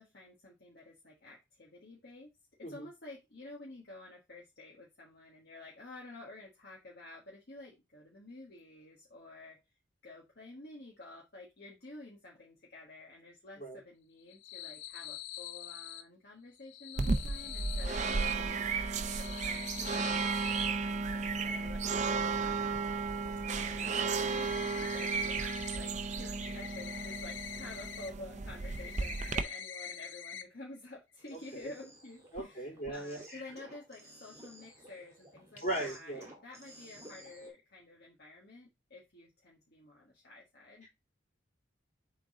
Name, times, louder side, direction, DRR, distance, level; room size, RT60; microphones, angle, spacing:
voice 1, 0.0-2.3 2.7-9.6 10.0-22.7 23.6-25.9 26.2-40.9, left 2 dB, 55° left, -3 dB, 1.5 m, -51 dB
sound 1, 14.2-16.0 16.6-18.3 18.9-20.7 22.7-22.8 23.2-23.3 23.8-25.8 26.1-28.1 28.4-30.4 30.7-30.8 31.2-31.3 32.3-32.5 32.8-32.9, left 8 dB, 70° left, 0.7 m, -45 dB
sound 2, 17.0-29.4, right 4 dB, 40° right, 0.5 m, -34 dB
sound 3, 31.2-37.5, right 1 dB, 15° right, 2.1 m, -54 dB
voice 2, 32.3-33.4 35.6-36.3, right 1 dB, 40° left, -3 dB, 3.3 m, -38 dB
7.0 x 3.9 x 3.7 m, 0.23 s
head